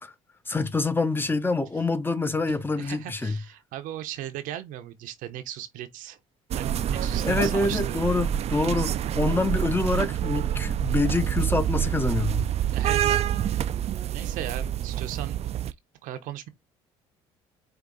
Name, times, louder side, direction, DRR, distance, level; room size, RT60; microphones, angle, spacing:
voice 1, 0.5-3.4 7.0-12.5, left 3 dB, 15° left, 1.0 m, -26 dB
voice 2, 2.8-6.2 6.5-8.1 12.7-13.6 14.1-15.4 16.0-16.5, right 12 dB, 70° right, 0.8 m, -37 dB
sound 1, 6.5-15.7, right 10 dB, 50° right, 0.4 m, -27 dB
4.8 x 2.6 x 3.9 m
supercardioid pair, 70°, 14 cm